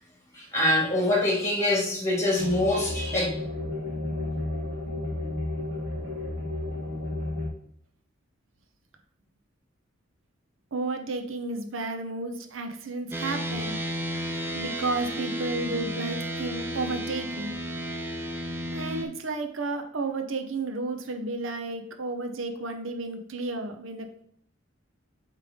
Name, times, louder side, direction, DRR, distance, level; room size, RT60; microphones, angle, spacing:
voice 1, 0.3-3.3, left 1 dB, 15° left, -2 dB, 1.7 m, -24 dB
sound 1, 2.4-7.5, left 2 dB, 55° right, 1.6 m, -32 dB
voice 2, 10.7-13.8 14.5-17.5 18.7-24.1, right 3 dB, 80° right, 6 dB, 0.8 m, -32 dB
sound 2, 13.1-19.0, equal, 10° right, 0.5 m, -32 dB
8.4 x 3.3 x 3.6 m, 0.66 s
head